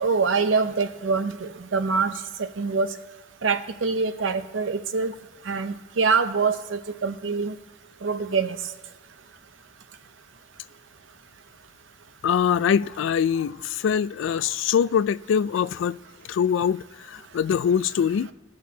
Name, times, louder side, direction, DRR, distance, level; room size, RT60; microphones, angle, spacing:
voice 1, 0.0-2.1 2.4-2.9 3.4-5.1 5.5-7.5 8.0-8.6, right 4 dB, 75° right, 0.6 m, -24 dB
voice 2, 12.2-16.0 16.3-18.3, left 7 dB, 75° left, 0.3 m, -23 dB
17.0 x 6.3 x 2.8 m
head